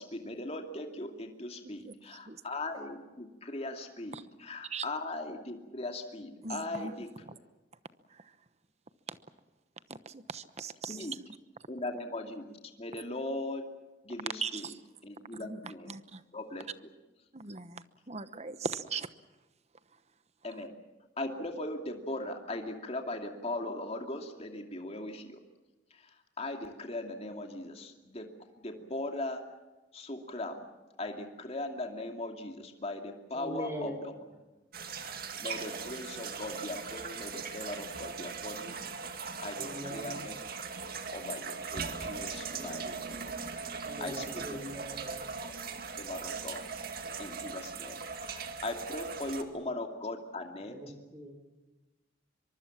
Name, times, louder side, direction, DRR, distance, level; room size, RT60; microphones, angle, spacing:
voice 1, 0.0-7.1 10.9-11.1 11.7-13.7 14.0-14.6 15.0-15.9 16.3-16.6 20.4-20.7 21.2-25.4 25.9-28.3 28.6-29.4 29.9-30.7 31.0-34.2 34.9-35.1 35.4-38.7 39.1-40.4 41.1-43.3 43.6-44.6 46.0-46.6 47.2-50.8, left 2 dB, 35° left, 3 dB, 2.6 m, -39 dB
voice 2, 1.6-1.9 2.3-2.4 4.1-4.2 4.7-4.8 6.4-6.9 7.3-7.4 8.1-8.3 9.1-9.2 9.9-11.1 14.4-14.8 15.3-16.2 17.3-19.1, right 5 dB, 35° right, 13 dB, 1.0 m, -40 dB
voice 3, 33.3-34.0 39.6-40.2 43.8-45.2 50.6-51.4, right 1 dB, 15° right, 5 dB, 4.2 m, -41 dB
sound 1, 34.7-49.4, right 5 dB, 55° right, 2.2 m, -39 dB
23.5 x 23.5 x 7.4 m, 1.1 s
head